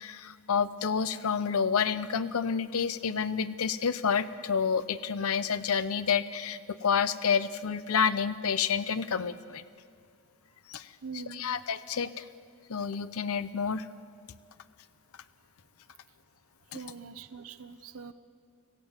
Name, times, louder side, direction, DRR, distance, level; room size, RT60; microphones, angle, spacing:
voice 1, 0.0-9.6 10.7-12.2 12.7-13.9 16.7-16.8, left 6 dB, 80° left, 14 dB, 0.6 m, -29 dB
voice 2, 11.0-11.5 16.7-18.1, right 5 dB, 75° right, 12 dB, 0.8 m, -43 dB
25.5 x 16.0 x 8.0 m, 2.2 s
head